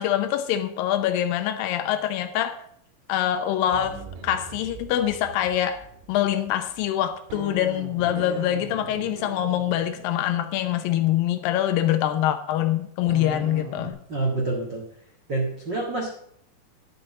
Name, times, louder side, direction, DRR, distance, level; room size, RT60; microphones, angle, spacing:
voice 1, 0.0-2.6 3.1-14.0, left 11 dB, 90° left, 2.0 m, -25 dB
sound 1, 3.7-12.0 13.1-13.9, right 3 dB, 90° right, 3.9 m, -41 dB
voice 2, 14.1-14.8 15.3-16.1, right 2 dB, 75° right, 1.0 m, -27 dB
10.5 x 6.2 x 7.5 m
omnidirectional pair, 5.1 m